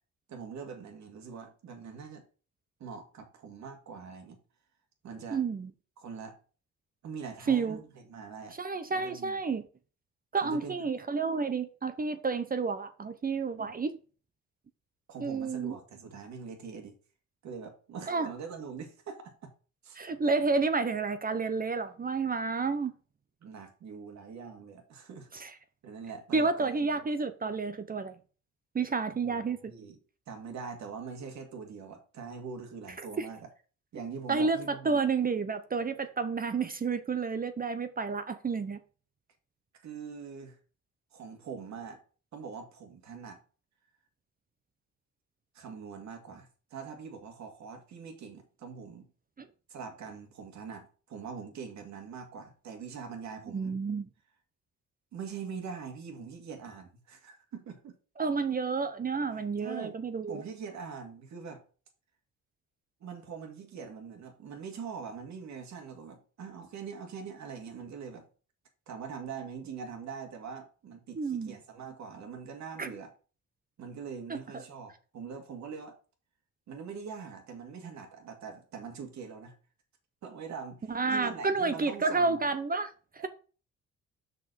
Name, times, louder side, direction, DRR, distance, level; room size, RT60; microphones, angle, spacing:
voice 1, 0.3-2.2 2.8-4.4 5.0-5.4 6.0-6.4 7.0-8.6 8.9-9.4 10.4-10.9 13.5-13.7 15.1-16.9 17.4-19.3 19.8-20.0 23.4-25.3 25.8-26.7 29.2-30.0 30.3-33.5 33.9-35.0 39.8-40.6 41.1-42.0 42.3-43.4 45.5-49.1 49.7-53.8 55.1-57.9 59.3-60.0 60.3-61.6 63.0-68.2 68.9-73.1 73.8-75.9 76.7-79.5 80.2-82.4 83.2-83.3, right 6 dB, 65° right, 2.2 m, -43 dB
voice 2, 5.3-5.7 7.5-7.8 8.6-9.7 10.3-14.0 15.2-15.7 18.1-18.3 19.9-22.9 25.3-25.5 26.3-28.1 28.7-29.6 33.2-33.3 34.3-38.8 49.4-49.5 53.5-54.1 58.2-60.4 71.2-71.6 72.8-72.9 74.3-74.6 80.9-82.9, right 4 dB, 30° right, 0.8 m, -30 dB
6.1 x 5.5 x 6.2 m
cardioid pair, 90°, 30 cm